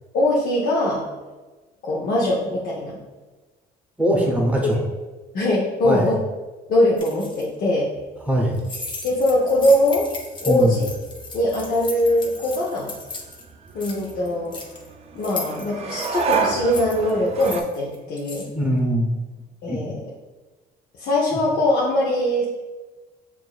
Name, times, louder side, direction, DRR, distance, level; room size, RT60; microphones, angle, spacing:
voice 1, 0.1-1.0 1.8-3.0 4.3-4.5 5.3-6.2 6.7-7.9 9.0-10.1 10.4-10.9 11.3-12.9 13.7-14.5 15.1-18.5 19.6-20.0 21.0-22.5, left 1 dB, 60° left, -4 dB, 0.8 m, -21 dB
voice 2, 4.0-4.8 5.8-6.1 8.2-8.6 10.5-10.8 18.5-19.2 19.7-19.8, equal, 10° right, -2 dB, 0.8 m, -21 dB
sound 1, 7.0-7.4 8.5-13.4 13.7-14.9 15.2-18.5, left 3 dB, 30° left, 0.7 m, -36 dB
sound 2, 8.0-17.6, right 5 dB, 35° right, 0.5 m, -32 dB
5.9 x 2.5 x 2.3 m, 1.2 s
cardioid pair, 110°, 17 cm